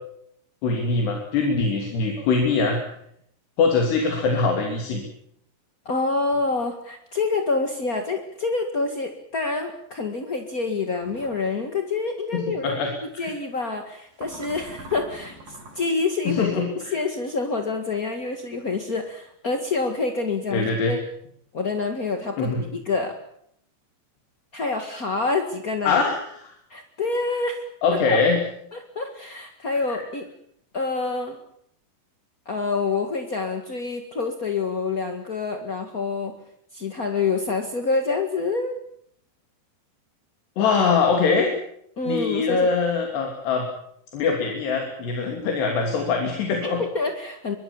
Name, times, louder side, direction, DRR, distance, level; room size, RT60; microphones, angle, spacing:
voice 1, 0.6-2.8 3.6-5.0 12.3-13.3 16.3-17.0 20.5-20.9 22.4-22.6 25.8-26.2 27.8-28.4 29.9-30.0 40.6-41.5 42.1-43.7 44.1-46.8, left 4 dB, 85° left, 2 dB, 5.0 m, -23 dB
voice 2, 5.8-12.7 13.0-16.5 16.9-21.0 21.5-23.2 24.5-26.0 26.7-27.7 28.1-28.2 28.7-30.3 30.7-31.4 32.4-36.4 36.7-38.8 42.0-42.7 46.8-47.5, left 3 dB, 45° left, 5 dB, 1.1 m, -27 dB
sound 1, 11.0-11.5 14.1-15.9, right 1 dB, 60° right, 6.3 m, -43 dB
24.0 x 23.5 x 7.2 m, 0.71 s
omnidirectional pair, 4.7 m